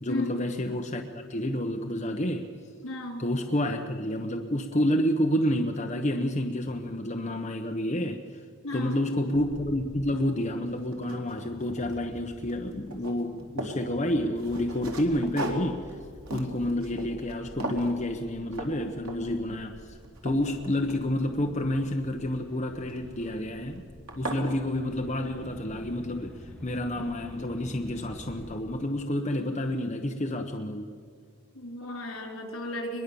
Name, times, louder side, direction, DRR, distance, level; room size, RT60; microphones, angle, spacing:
voice 1, 0.0-2.5 3.2-8.2 8.7-15.8 16.3-20.0 20.2-23.8 24.1-30.9, left 1 dB, 30° left, 3 dB, 1.1 m, -29 dB
voice 2, 2.8-3.2 8.6-8.9 31.5-33.0, left 1 dB, 75° left, 2 dB, 4.7 m, -34 dB
sound 1, 9.3-28.6, equal, 5° left, 3.7 m, -49 dB
sound 2, 10.2-10.3 10.7-12.2 12.5-13.8 14.4-17.4 17.6-18.0 18.5-18.7 19.1-19.4 19.8-21.4 22.9-23.3 23.8-23.9 24.1-24.5, right 1 dB, 90° right, 3.6 m, -38 dB
24.0 x 22.0 x 7.1 m, 2.2 s
head